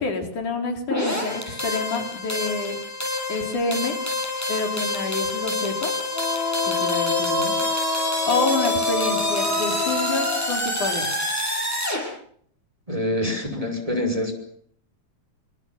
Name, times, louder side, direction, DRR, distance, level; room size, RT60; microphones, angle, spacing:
voice 1, 0.0-2.8 3.3-4.0 4.5-5.9 6.6-11.2, left 3 dB, 85° left, 4 dB, 5.1 m, -28 dB
sound 1, 0.9-12.0, left 1 dB, 5° left, 7.6 m, -27 dB
Wind instrument woodwind instrument, 6.1-10.6, left 5 dB, 60° left, 0.6 m, -28 dB
voice 2, 12.9-14.3, left 1 dB, 10° right, 5 dB, 5.4 m, -25 dB
27.0 x 24.5 x 7.3 m, 0.66 s
omnidirectional pair, 3.4 m